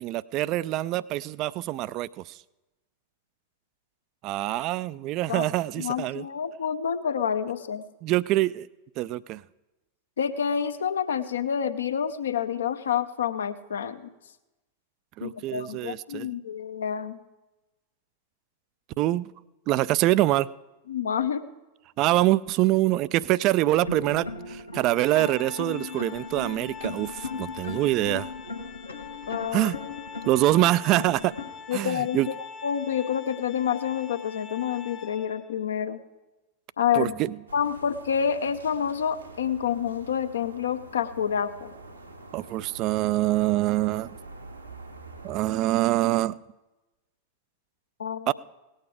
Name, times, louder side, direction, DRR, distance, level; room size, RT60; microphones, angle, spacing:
voice 1, 0.0-2.4 4.2-6.2 8.0-8.7 9.0-9.4 15.2-16.3 19.0-19.3 19.7-20.5 22.0-28.3 29.5-29.7 30.3-31.3 31.7-32.3 36.9-37.3 42.3-44.1 45.2-46.4 48.3-48.4, right 16 dB, 40° right, 20 dB, 0.3 m, -25 dB
voice 2, 5.8-7.8 10.2-14.1 15.2-17.2 20.9-21.4 29.3-29.7 31.7-32.2 32.6-36.0 36.8-37.1 37.5-41.7 48.0-48.3, left 8 dB, 65° left, 10 dB, 0.7 m, -28 dB
sound 1, 23.7-31.5, left 3 dB, 80° left, 1.2 m, -37 dB
Organ, 24.9-35.6, left 6 dB, 20° left, 0.9 m, -44 dB
sound 2, 37.5-45.4, right 2 dB, 80° right, 1.2 m, -46 dB
18.0 x 8.8 x 4.8 m, 1.1 s
figure-of-eight pair, 90°, 0 cm